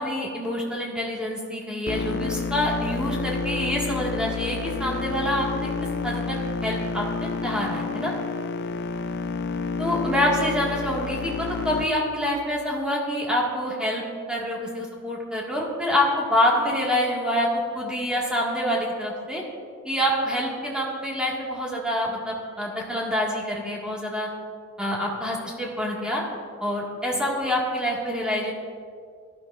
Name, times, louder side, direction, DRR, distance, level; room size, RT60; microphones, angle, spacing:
voice 1, 0.0-5.7 6.0-6.4 6.6-8.1 9.8-14.0 14.3-17.5 17.7-19.4 19.8-24.3 24.8-26.2 26.6-28.5, left 1 dB, 5° right, -3 dB, 1.8 m, -26 dB
sound 1, 1.9-11.9, left 4 dB, 50° left, 0.4 m, -29 dB
17.0 x 12.0 x 2.5 m, 2.1 s
head